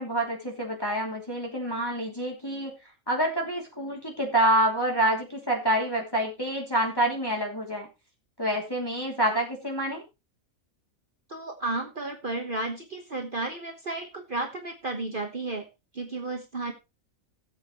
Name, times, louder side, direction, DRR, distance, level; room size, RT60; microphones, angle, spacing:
voice 1, 0.0-2.7 3.1-7.9 8.4-10.0, right 1 dB, 15° left, -1 dB, 3.0 m, -27 dB
voice 2, 11.3-15.7 15.9-16.7, right 2 dB, 40° right, 2 dB, 1.4 m, -33 dB
17.5 x 8.0 x 3.1 m, 0.26 s
omnidirectional pair, 1.4 m